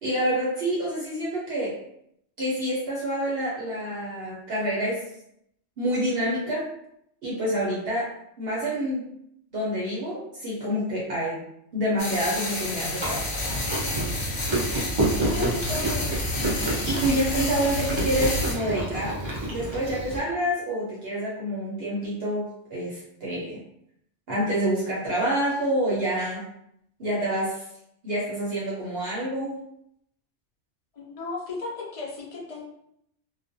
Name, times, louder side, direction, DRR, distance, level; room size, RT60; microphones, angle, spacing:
voice 1, 0.0-1.8 2.4-5.0 5.8-6.7 7.2-8.1 8.4-9.0 9.5-11.4 11.7-13.3 16.8-19.2 19.5-23.6 24.3-26.5 27.0-27.6 28.0-29.6, right 1 dB, 60° right, -6 dB, 0.8 m, -27 dB
sound 1, 12.0-18.5, left 1 dB, 65° left, 1.0 m, -30 dB
Chewing mastication, 13.0-20.2, right 1 dB, 45° right, 0.3 m, -29 dB
voice 2, 15.2-16.1 30.9-32.6, left 3 dB, 45° left, -3 dB, 0.4 m, -34 dB
2.4 x 2.2 x 2.6 m, 0.74 s
omnidirectional pair, 1.2 m